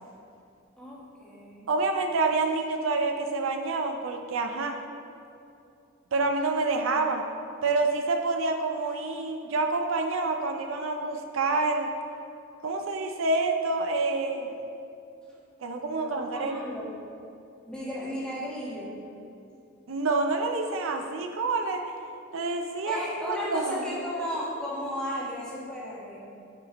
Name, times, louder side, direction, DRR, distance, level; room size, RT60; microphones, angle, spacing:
voice 1, 0.8-1.7 16.0-16.9 17.6-19.0 22.9-26.2, equal, 5° left, -7 dB, 1.3 m, -35 dB
voice 2, 1.7-4.8 6.1-7.2 7.6-11.9 12.6-14.5 15.6-16.5 19.9-21.8 22.3-23.9, right 3 dB, 75° right, 4 dB, 0.5 m, -27 dB
9.9 x 5.0 x 3.0 m, 2.7 s
head